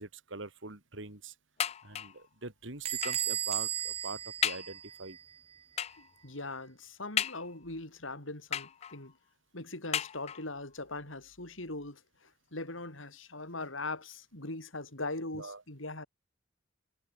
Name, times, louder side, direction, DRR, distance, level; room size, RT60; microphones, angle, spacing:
voice 1, 0.0-1.3 1.8-5.2 15.3-15.6, right 3 dB, 70° right, 3.0 m, -43 dB
sound 1, 1.6-2.3 3.0-3.3 3.9-4.0 4.4-4.8 5.8-6.1 7.2-7.8 8.5-9.1 9.9-10.6 11.4-11.5 11.8-11.9, left 9 dB, 30° left, 0.3 m, -35 dB
Bell / Door, 2.9-5.4, right 10 dB, 30° right, 0.5 m, -35 dB
voice 2, 6.0-9.1 9.5-16.1, left 2 dB, 75° left, 5.8 m, -41 dB
head